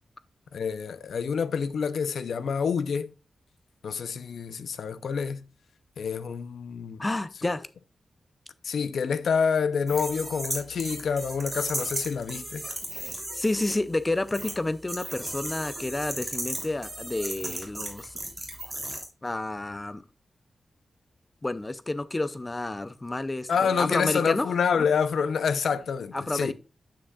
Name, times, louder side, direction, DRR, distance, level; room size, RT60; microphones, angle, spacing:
voice 1, 0.5-3.1 3.8-5.4 6.0-7.1 8.6-12.7 23.5-26.5, left 6 dB, 90° left, 0.5 m, -27 dB
voice 2, 7.0-7.7 12.9-18.2 19.2-20.0 21.4-24.5 26.1-26.5, left 2 dB, 20° left, 0.4 m, -30 dB
sound 1, 9.9-13.7 14.3-14.5 14.9-19.0, right 1 dB, 15° right, 2.9 m, -35 dB
8.7 x 7.3 x 2.3 m
wide cardioid pair, 115°, 0 cm